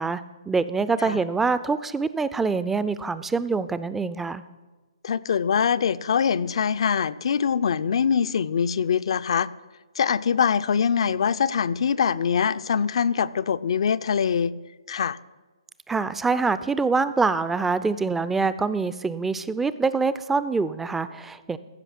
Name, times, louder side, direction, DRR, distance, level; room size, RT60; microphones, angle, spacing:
voice 1, 0.0-4.4 15.9-21.6, right 4 dB, 5° right, 14 dB, 0.3 m, -25 dB
voice 2, 5.0-9.5 10.0-14.5 14.9-15.2, left 7 dB, 60° left, 16 dB, 0.4 m, -23 dB
14.5 x 5.8 x 5.9 m, 1.3 s
hypercardioid pair, 140°, 3 cm